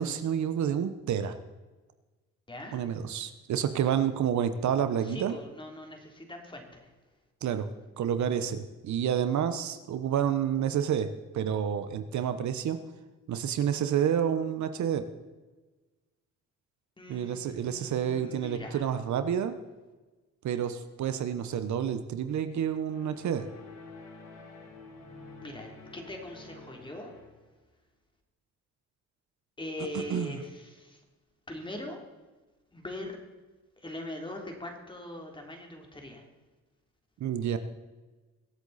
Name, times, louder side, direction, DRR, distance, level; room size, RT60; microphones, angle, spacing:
voice 1, 0.0-1.3 2.7-5.4 7.4-7.7 8.0-11.1 11.3-12.8 13.3-15.1 17.1-19.5 20.4-23.5 30.1-30.3 37.2-37.6, right 9 dB, 70° right, 10 dB, 1.1 m, -29 dB
voice 2, 2.5-2.8 5.0-6.9 17.0-18.9 25.4-27.1 29.6-31.0 31.5-32.1 32.7-33.2 33.8-36.3, left 1 dB, 15° left, 2 dB, 3.3 m, -41 dB
sound 1, 22.9-27.5, left 3 dB, 65° left, 3.5 m, -49 dB
23.0 x 8.3 x 4.2 m, 1.2 s
cardioid pair, 90°, 30 cm